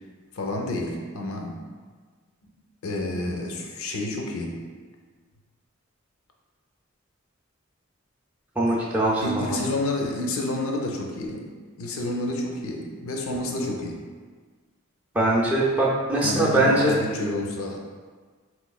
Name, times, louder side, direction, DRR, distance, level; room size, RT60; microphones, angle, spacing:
voice 1, 0.3-1.7 2.8-4.7 8.7-8.8 9.2-11.5 11.8-14.0 16.2-17.8, left 1 dB, 75° left, 1 dB, 0.5 m, -29 dB
voice 2, 8.6-9.6 15.1-17.0, right 1 dB, 10° right, -5 dB, 0.3 m, -22 dB
3.9 x 3.0 x 2.3 m, 1.5 s
head